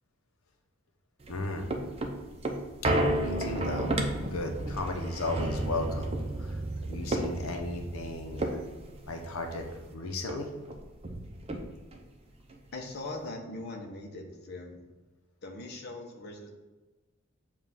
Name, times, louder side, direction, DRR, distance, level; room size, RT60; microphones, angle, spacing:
sound 1, 1.2-9.9 10.3-10.4 10.6-12.0 12.5-12.6, right 1 dB, 30° right, 0.6 m, -32 dB
voice 1, 1.3-1.7 2.8-2.9 3.2-6.6 6.9-8.6 9.1-10.5, left 2 dB, 85° left, 3 dB, 0.7 m, -35 dB
voice 2, 12.7-14.8 15.4-16.5, left 2 dB, 50° left, 1 dB, 0.8 m, -40 dB
7.1 x 2.4 x 5.6 m, 1.2 s
head